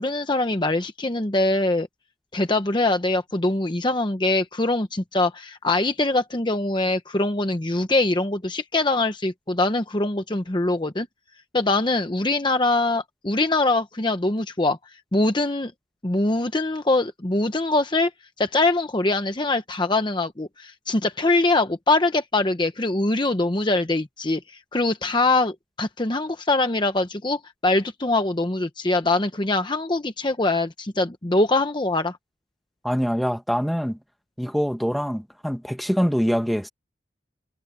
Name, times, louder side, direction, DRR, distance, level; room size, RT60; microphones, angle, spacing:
voice 1, 0.0-1.9 2.3-11.1 11.5-14.8 15.1-15.7 16.0-18.1 18.4-32.2, left 2 dB, 25° left, 0.9 m, -23 dB
voice 2, 32.8-34.0 34.4-36.7, equal, ahead, 1.5 m, -24 dB
head